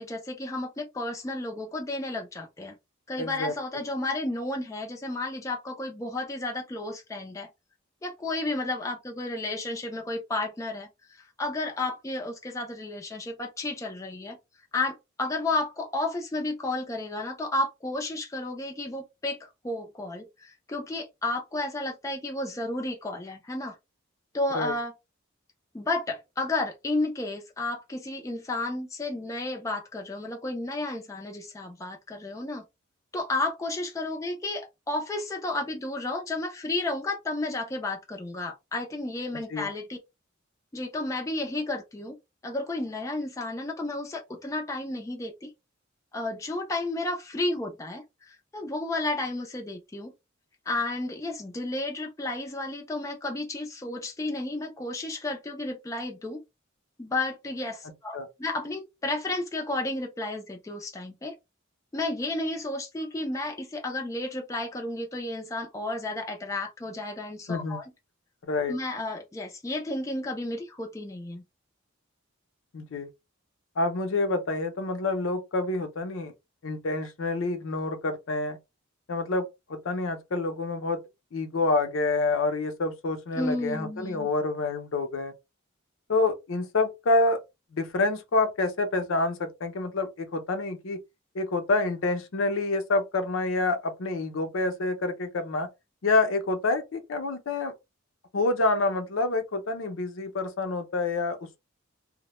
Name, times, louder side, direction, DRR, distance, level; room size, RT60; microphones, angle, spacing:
voice 1, 0.0-2.7 3.1-7.5 8.0-14.4 14.7-23.7 24.3-24.9 25.7-32.6 33.1-40.0 40.7-42.2 42.4-45.5 46.1-50.1 50.7-56.4 57.0-61.3 61.9-67.9 68.7-71.4 83.3-84.3, left 2 dB, 15° left, 0.3 m, -32 dB
voice 2, 3.2-3.5 24.5-24.7 39.5-39.7 58.1-58.3 67.5-67.8 68.4-68.7 72.7-73.1 73.8-76.3 76.6-78.6 79.1-79.4 79.7-81.0 81.3-85.3 86.1-87.4 87.7-91.0 91.3-95.7 96.0-97.7 98.3-101.6, left 2 dB, 70° left, 0.5 m, -27 dB
2.1 x 2.0 x 2.9 m
head